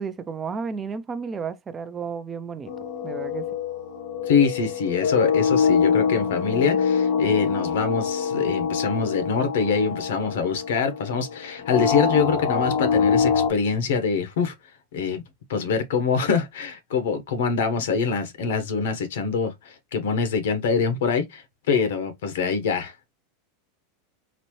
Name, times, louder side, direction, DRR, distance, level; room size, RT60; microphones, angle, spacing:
voice 1, 0.0-2.7 3.0-3.5, right 5 dB, 15° right, 0.3 m, -32 dB
sound 1, 2.7-13.5, left 6 dB, 50° left, 0.6 m, -24 dB
voice 2, 4.2-14.5 14.9-15.2 15.5-22.9, left 5 dB, 85° left, 1.0 m, -24 dB
4.1 x 2.5 x 3.0 m
supercardioid pair, 165°, 0 cm